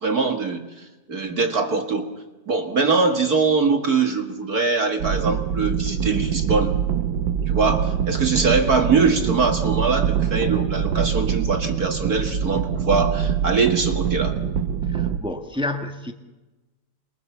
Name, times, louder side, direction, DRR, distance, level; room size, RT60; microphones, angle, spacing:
voice 1, 0.0-2.1 2.5-6.8 7.5-14.4, right 4 dB, 40° right, 5 dB, 1.7 m, -22 dB
sound 1, 5.0-15.2, right 8 dB, 65° right, 1.2 m, -24 dB
voice 2, 14.9-16.1, left 1 dB, 5° right, 5 dB, 0.4 m, -29 dB
28.0 x 22.0 x 7.1 m, 1.1 s
omnidirectional pair, 3.4 m